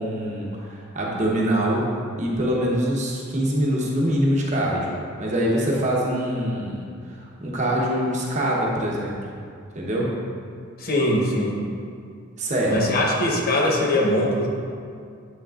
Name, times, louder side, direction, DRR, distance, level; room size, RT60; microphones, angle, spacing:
voice 1, 0.0-1.9 2.2-4.9 5.2-6.8 7.4-9.2 9.7-10.1 12.4-12.8, equal, 35° right, -3 dB, 1.0 m, -24 dB
voice 2, 10.8-11.6 12.7-14.5, left 1 dB, 45° left, -1 dB, 0.8 m, -21 dB
8.1 x 5.9 x 2.5 m, 2.2 s
head